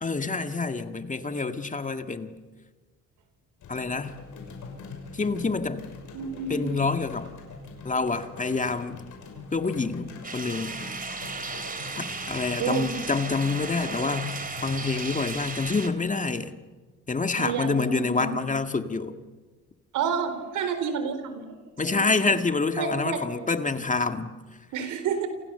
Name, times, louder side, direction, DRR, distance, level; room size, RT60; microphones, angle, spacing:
voice 1, 0.0-2.4 3.7-4.2 5.1-5.8 6.5-7.3 7.8-9.0 9.5-10.8 12.0-16.5 17.1-19.1 21.8-24.4, left 4 dB, 25° left, 1.9 m, -27 dB
sound 1, 3.6-15.8, left 4 dB, 75° left, 6.2 m, -43 dB
voice 2, 6.1-6.7 12.6-12.9 17.4-18.4 19.9-21.6 21.9-22.3 22.8-23.2 24.7-25.3, right 6 dB, 85° right, 4.0 m, -30 dB
sound 2, 10.2-15.9, right 4 dB, 30° right, 3.0 m, -35 dB
28.5 x 28.5 x 6.9 m
cardioid pair, 90°, 30 cm